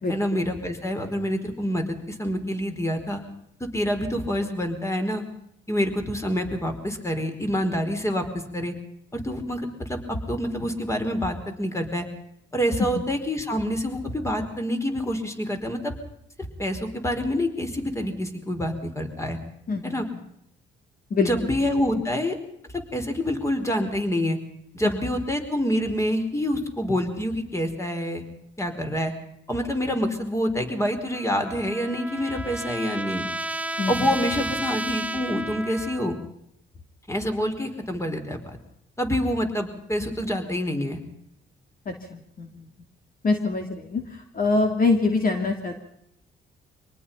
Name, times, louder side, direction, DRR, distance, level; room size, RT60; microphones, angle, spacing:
voice 1, 0.1-3.2 3.6-5.2 5.7-8.2 8.5-8.7 9.1-12.1 12.5-15.9 16.6-19.4 19.8-20.0 21.2-22.3 22.7-24.4 24.7-28.2 28.6-29.1 29.5-33.2 33.9-36.1 37.1-38.6 39.0-41.0, equal, 15° left, 5 dB, 4.6 m, -27 dB
voice 2, 19.7-20.0 21.1-21.3 33.8-34.2 41.8-42.7 43.2-45.8, left 3 dB, 45° left, 4 dB, 3.0 m, -25 dB
Trumpet, 31.1-36.3, right 1 dB, 5° right, 0.9 m, -32 dB
25.0 x 19.0 x 5.7 m, 0.76 s
cardioid pair, 90°, 20 cm